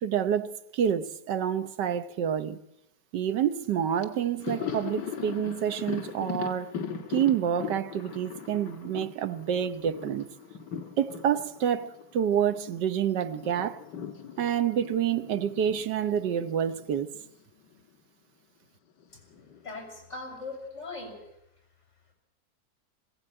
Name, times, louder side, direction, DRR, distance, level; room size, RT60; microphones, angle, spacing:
voice 1, 0.0-2.6 3.1-6.8 7.1-10.3 11.0-13.8 14.4-17.1, right 9 dB, 80° right, 1.6 m, -28 dB
Thunder, 3.6-3.7 4.0-12.8 13.1-17.4 17.7-17.8 19.0-19.7, left 7 dB, 80° left, 2.3 m, -40 dB
voice 2, 19.6-21.2, left 3 dB, 40° left, 7.1 m, -39 dB
21.0 x 16.5 x 8.8 m
omnidirectional pair, 1.8 m